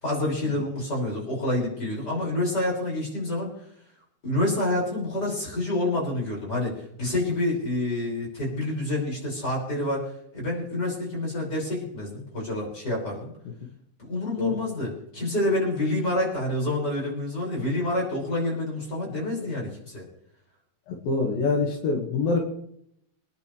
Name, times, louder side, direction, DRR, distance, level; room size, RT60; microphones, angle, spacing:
voice 1, 0.0-3.5 4.2-10.0 10.3-13.3 14.0-20.0, left 1 dB, 25° left, -2 dB, 6.4 m, -28 dB
voice 2, 20.9-22.4, left 3 dB, 75° left, 0 dB, 3.6 m, -25 dB
26.5 x 10.5 x 3.3 m, 0.73 s
omnidirectional pair, 4.2 m